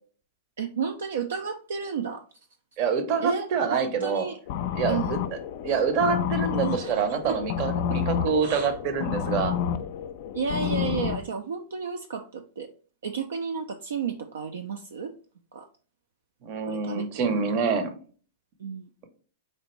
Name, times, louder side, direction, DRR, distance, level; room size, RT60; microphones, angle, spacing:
voice 1, 0.6-2.2 3.2-4.4 4.9-5.2 6.6-7.4 8.4-8.8 10.3-12.7 13.0-15.1 15.5-15.7 16.7-17.4 18.6-18.9, right 6 dB, 75° right, 7 dB, 0.3 m, -32 dB
voice 2, 2.8-4.2 4.7-9.6 16.4-18.0, right 5 dB, 45° right, 8 dB, 0.7 m, -26 dB
sound 1, 4.5-11.2, left 9 dB, 55° left, 0.3 m, -30 dB
4.2 x 2.5 x 3.0 m, 0.41 s
hypercardioid pair, 110°, 0 cm